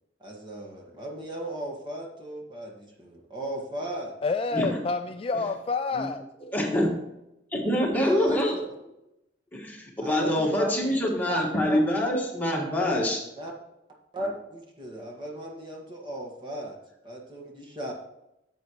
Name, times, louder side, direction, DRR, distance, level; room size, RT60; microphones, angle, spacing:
voice 1, 0.2-4.1 8.0-8.6 10.0-11.4 11.7-11.8 13.4-13.5 14.1-16.8 17.0-17.9, right 1 dB, 25° right, -1 dB, 1.8 m, -36 dB
voice 2, 4.2-6.2, left 4 dB, 30° left, 8 dB, 0.3 m, -28 dB
voice 3, 6.5-6.9 7.5-8.5 9.5-13.2, left 1 dB, 10° left, -2 dB, 1.8 m, -25 dB
11.0 x 8.0 x 3.1 m, 0.88 s
head